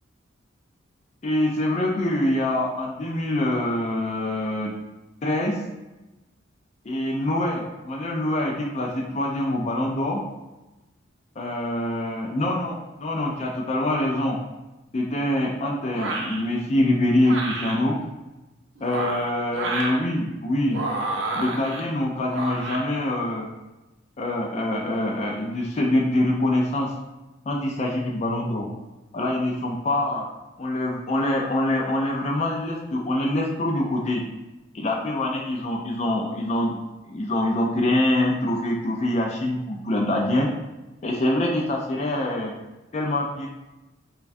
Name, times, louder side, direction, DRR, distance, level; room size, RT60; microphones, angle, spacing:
voice 1, 1.2-4.7 5.2-5.6 6.9-10.2 11.4-14.4 14.9-18.0 18.8-20.9 21.4-23.5 24.2-26.9 27.5-28.7 29.1-30.2 30.6-34.2 34.7-36.8 37.1-40.5 41.0-42.5 42.9-43.5, left 1 dB, 35° left, -1 dB, 0.4 m, -25 dB
sound 1, 15.9-16.4 17.2-17.7 18.8-20.0 20.7-21.8 22.3-22.8, right 2 dB, 65° right, 0.6 m, -29 dB
5.5 x 2.2 x 2.6 m, 1.0 s
head